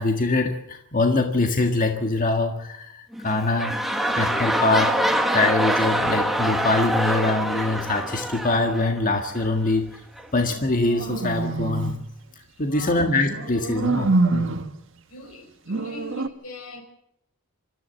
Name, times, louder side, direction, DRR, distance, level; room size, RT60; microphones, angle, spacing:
voice 1, 0.0-3.8 4.2-5.0 5.3-9.9 10.3-12.0 12.6-14.5, left 2 dB, 35° left, 1.7 m, -23 dB
sound 1, 3.1-9.5 10.2-10.3, equal, ahead, 1.6 m, -25 dB
sound 2, 10.4-12.0 13.3-14.8 15.7-16.3, right 3 dB, 55° right, 1.4 m, -26 dB
voice 2, 12.5-13.1 13.8-14.0 14.3-14.4 15.1-16.8, left 2 dB, 80° left, 5.2 m, -40 dB
26.0 x 14.0 x 8.0 m
head